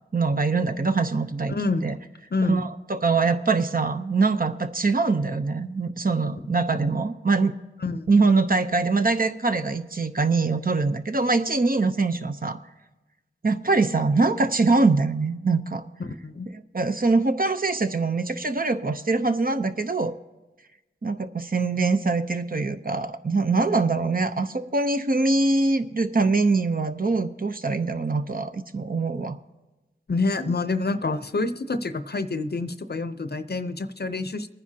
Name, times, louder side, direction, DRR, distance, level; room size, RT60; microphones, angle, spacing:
voice 1, 0.1-1.5 1.8-1.9 2.5-7.5 8.1-12.6 13.4-15.8 16.5-20.1 21.0-29.4, right 3 dB, 45° right, 9 dB, 0.7 m, -23 dB
voice 2, 1.5-1.8 2.3-2.7 7.8-8.1 16.0-16.5 30.1-34.5, left 3 dB, 50° left, 12 dB, 0.7 m, -27 dB
23.0 x 9.9 x 2.8 m, 1.1 s
wide cardioid pair, 50°, 21 cm